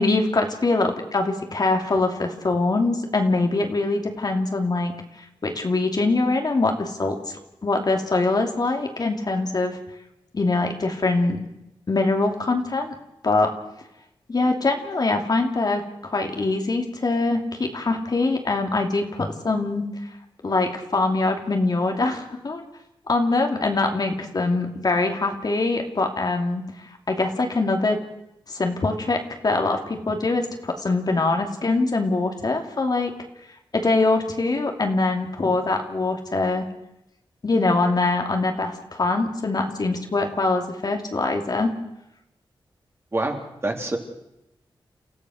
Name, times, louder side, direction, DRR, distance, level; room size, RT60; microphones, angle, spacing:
voice 1, 0.0-4.9 5.4-7.2 7.6-9.8 10.3-11.4 11.9-12.9 13.2-13.5 14.3-19.9 20.4-22.6 23.1-26.6 27.1-28.0 28.5-33.1 33.7-36.6 37.4-41.7, left 3 dB, 45° left, 4 dB, 2.7 m, -23 dB
voice 2, 43.1-44.0, right 2 dB, 30° right, 2 dB, 3.4 m, -26 dB
29.5 x 15.0 x 6.4 m, 0.86 s
wide cardioid pair, 85°, 9 cm